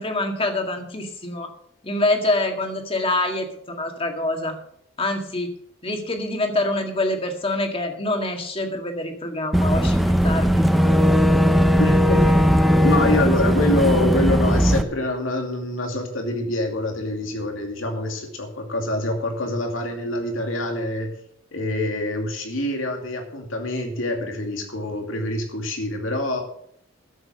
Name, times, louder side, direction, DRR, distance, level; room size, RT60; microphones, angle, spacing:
voice 1, 0.0-1.5 1.8-4.6 5.0-5.5 5.8-10.7, left 2 dB, 30° left, 4 dB, 1.9 m, -25 dB
Boat Water vehicle / Engine, 9.5-14.8, equal, ahead, 0.8 m, -18 dB
voice 2, 11.8-21.1 21.5-26.4, left 1 dB, 90° left, 3 dB, 2.5 m, -25 dB
12.5 x 7.8 x 6.6 m, 0.69 s
head